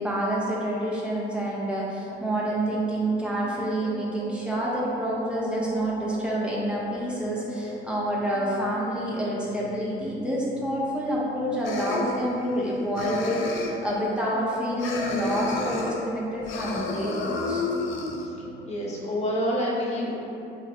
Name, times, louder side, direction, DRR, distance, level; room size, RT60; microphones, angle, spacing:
voice 1, 0.0-17.6, right 1 dB, 5° right, -6 dB, 0.6 m, -28 dB
sound 1, 1.9-19.2, equal, 50° right, 1.4 m, -42 dB
sound 2, 11.6-12.7 12.9-13.9 14.8-16.0 16.4-18.3, left 4 dB, 75° left, 0.4 m, -31 dB
voice 2, 18.6-20.2, equal, 35° left, -5 dB, 0.8 m, -27 dB
2.6 x 2.0 x 4.0 m, 2.7 s
cardioid pair, 90°, 20 cm